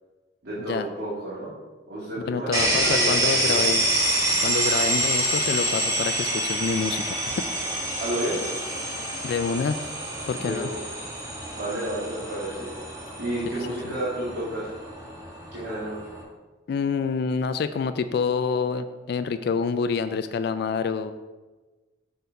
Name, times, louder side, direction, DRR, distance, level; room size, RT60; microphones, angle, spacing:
voice 1, 0.4-1.5 1.9-3.6 8.0-8.4 10.4-10.8 11.5-12.7 13.2-14.8 15.5-16.0, right 1 dB, 80° right, -9 dB, 2.1 m, -31 dB
voice 2, 2.3-3.9 4.4-7.3 9.2-9.8 10.3-10.7 16.7-21.1, left 5 dB, 60° left, 11 dB, 0.3 m, -27 dB
sound 1, 2.5-16.2, right 1 dB, 20° right, 1.2 m, -27 dB
6.7 x 4.4 x 4.6 m, 1.2 s
head